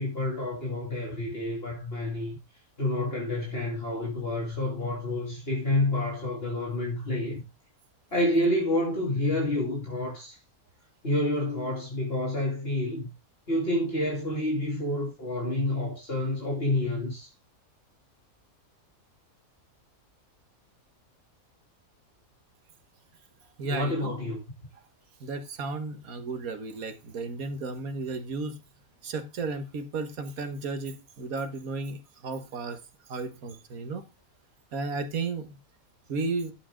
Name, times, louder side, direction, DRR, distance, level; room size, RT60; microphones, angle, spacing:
voice 1, 0.0-2.4 2.8-7.4 8.1-10.4 11.0-13.1 13.5-17.3 23.6-24.4, left 1 dB, 40° left, 2.8 m, -28 dB
voice 2, 23.6-24.1 25.2-28.6 29.0-32.8 33.1-34.0 34.7-35.5 36.1-36.5, right 3 dB, 75° right, 1.7 m, -34 dB
11.5 x 7.5 x 3.7 m
omnidirectional pair, 1.5 m